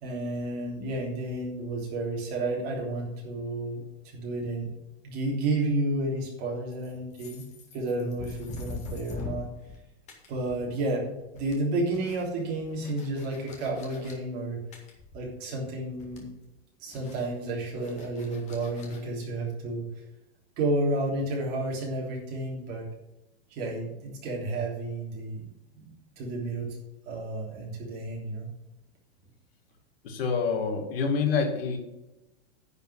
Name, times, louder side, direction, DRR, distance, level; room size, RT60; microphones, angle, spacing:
voice 1, 0.0-4.7 5.0-7.4 7.7-9.5 10.3-11.0 11.3-14.6 15.1-16.3 16.8-19.9 20.6-22.9 23.5-25.4 25.7-26.8 27.0-28.5, right 2 dB, 30° right, -2 dB, 3.3 m, -31 dB
sound 1, 6.7-9.8 10.1-11.0 11.2-14.1 14.7-15.6 15.9-16.5 16.9-19.0, left 3 dB, 20° left, 1.9 m, -43 dB
voice 2, 30.0-31.8, left 5 dB, 65° left, 3 dB, 2.6 m, -27 dB
10.5 x 5.4 x 7.7 m, 0.95 s
supercardioid pair, 170°, 32 cm